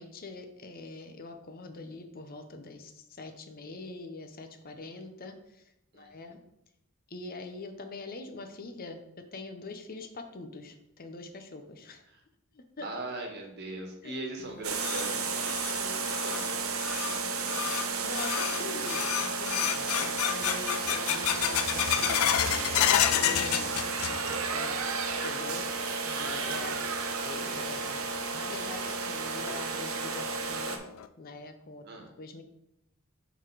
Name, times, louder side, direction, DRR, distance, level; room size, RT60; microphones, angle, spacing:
voice 1, 0.0-5.6 5.9-6.4 7.1-9.0 9.3-12.0 12.5-12.9 14.0-14.1 18.0-19.9 20.3-25.7 26.0-26.8 27.2-28.0 28.3-30.8 31.2-31.8 32.2-32.4, left 3 dB, 45° left, 7 dB, 0.7 m, -43 dB
voice 2, 12.8-17.8 19.9-20.2 31.8-32.1, right 2 dB, 50° right, 2 dB, 1.4 m, -41 dB
sound 1, 14.4-24.5 24.8-25.4 25.8-25.9 26.6-26.7 28.4-28.5 28.9-29.0 29.5-29.6 30.1-30.2 30.7-31.1, left 10 dB, 90° left, 0.4 m, -31 dB
sound 2, 14.6-30.8, right 4 dB, 85° right, 0.8 m, -33 dB
7.0 x 4.0 x 4.7 m, 0.80 s
head